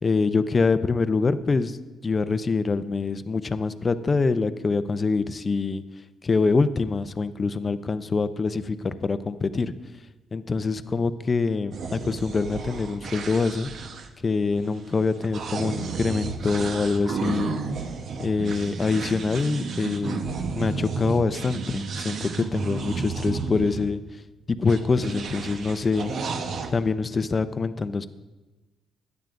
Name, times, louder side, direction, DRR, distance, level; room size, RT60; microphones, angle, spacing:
voice 1, 0.0-1.8 2.0-5.8 6.2-9.7 10.3-13.7 14.2-17.6 18.2-20.3 20.6-24.0 24.5-26.1 26.7-28.1, left 4 dB, 35° left, 12 dB, 0.6 m, -25 dB
sound 1, 11.7-23.9 24.7-26.7, right 5 dB, 65° right, 1.0 m, -32 dB
16.0 x 10.5 x 2.6 m, 1.2 s
cardioid pair, 90°, 0 cm